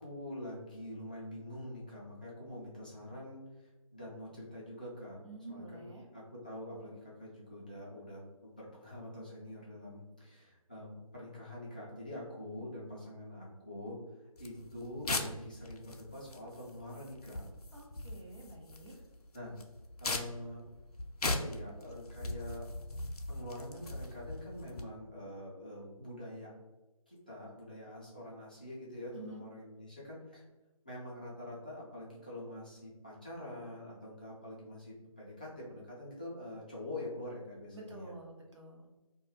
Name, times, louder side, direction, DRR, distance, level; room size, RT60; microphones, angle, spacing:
voice 1, 0.0-5.2 5.5-14.0 14.4-17.5 19.3-19.5 20.0-20.6 21.2-22.6 23.3-26.5 27.1-30.4 30.8-38.1, left 1 dB, 15° left, -7 dB, 0.3 m, -45 dB
voice 2, 5.2-6.1 17.7-18.9 29.1-29.4 37.7-38.8, right 1 dB, 50° right, -1 dB, 0.7 m, -49 dB
sound 1, 14.4-24.8, left 2 dB, 90° left, 0.4 m, -40 dB
2.3 x 2.1 x 3.1 m, 1.1 s
figure-of-eight pair, 155°, 19 cm